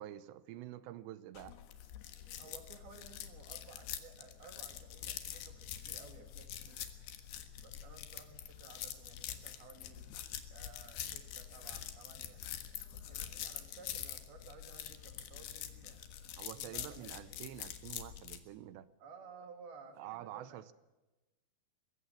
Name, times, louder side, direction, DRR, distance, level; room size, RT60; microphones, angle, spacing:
voice 1, 0.0-1.6 16.4-18.9 20.0-20.7, right 13 dB, 80° right, 15 dB, 3.0 m, -47 dB
sound 1, 1.3-18.4, left 10 dB, 70° left, 3.4 m, -45 dB
voice 2, 2.4-6.9 7.6-10.1 10.5-12.4 12.9-16.0 16.6-17.4 19.0-20.7, right 4 dB, 60° right, 5 dB, 4.4 m, -56 dB
21.5 x 16.0 x 8.6 m, 1.1 s
omnidirectional pair, 5.1 m